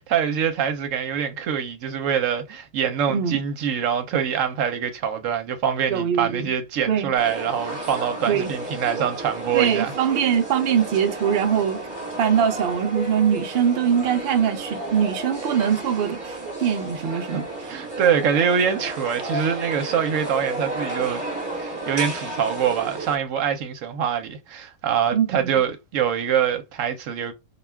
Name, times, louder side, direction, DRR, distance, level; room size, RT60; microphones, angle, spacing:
voice 1, 0.0-9.9 17.3-17.4 17.7-21.2 21.6-27.3, right 8 dB, 65° right, 0.9 m, -24 dB
voice 2, 3.1-3.4 5.9-6.5 6.9-7.1 8.3-8.5 9.5-11.8 12.2-17.5 25.1-25.6, right 8 dB, 85° right, 0.5 m, -22 dB
sound 1, 7.2-23.2, right 2 dB, 20° right, 1.1 m, -32 dB
2.4 x 2.3 x 3.3 m
omnidirectional pair, 1.6 m